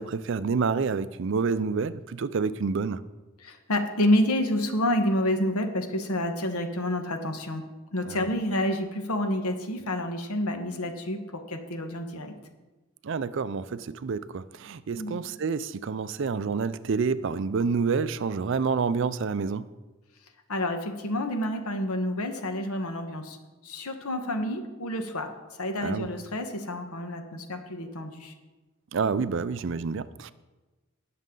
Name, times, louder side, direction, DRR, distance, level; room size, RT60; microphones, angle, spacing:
voice 1, 0.0-3.0 8.1-8.2 13.0-19.6 25.8-26.1 28.9-30.3, right 5 dB, 55° right, 16 dB, 0.4 m, -28 dB
voice 2, 3.4-7.6 7.9-12.3 14.9-15.2 20.5-23.4 23.6-28.3, left 1 dB, 85° left, 6 dB, 1.3 m, -29 dB
18.5 x 6.5 x 3.8 m, 1.2 s
head